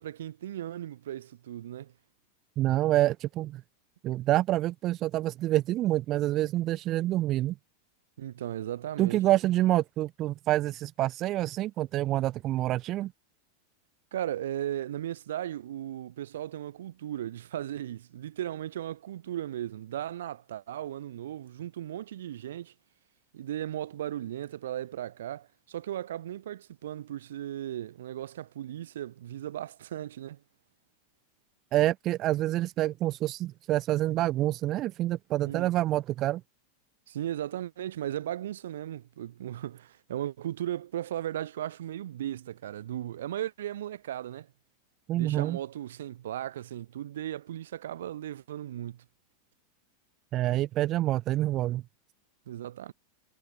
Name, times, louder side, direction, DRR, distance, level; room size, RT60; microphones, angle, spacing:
voice 1, 0.0-1.9 8.2-9.2 14.1-22.7 23.3-30.4 35.4-35.7 37.1-44.5 45.2-49.0 52.5-52.9, right 12 dB, 75° right, 3.2 m, -36 dB
voice 2, 2.6-3.6 4.0-7.5 9.0-13.1 31.7-36.4 45.1-45.6 50.3-51.8, right 15 dB, 40° right, 1.0 m, -27 dB
hypercardioid pair, 100°, 0 cm